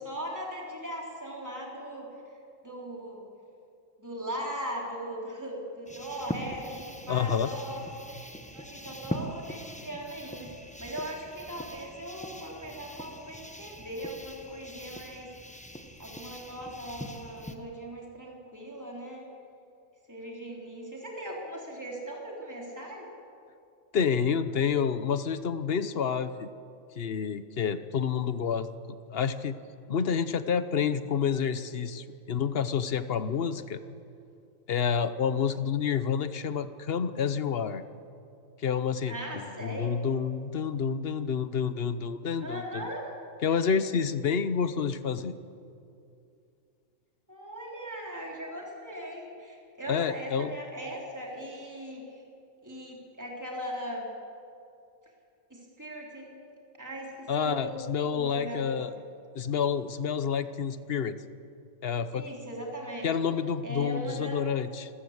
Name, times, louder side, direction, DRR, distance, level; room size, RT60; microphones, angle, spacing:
voice 1, 0.0-2.1 2.6-3.2 4.0-15.3 16.0-19.3 20.1-23.1 39.1-40.0 42.4-43.1 47.3-52.2 52.6-54.1 55.5-56.3 56.8-57.8 58.1-58.8 62.1-63.1 63.6-64.4, right 1 dB, 10° right, -2 dB, 3.6 m, -39 dB
sound 1, 5.9-17.6, equal, 5° left, 0.9 m, -42 dB
voice 2, 7.1-7.5 23.9-26.5 27.0-28.7 29.1-29.6 29.9-33.8 34.7-37.8 38.6-42.9 43.4-45.3 49.9-50.5 57.3-58.9 59.3-61.2 61.8-62.3 63.0-64.9, left 7 dB, 50° left, 12 dB, 1.0 m, -29 dB
27.0 x 14.5 x 8.1 m, 2.6 s
omnidirectional pair, 1.4 m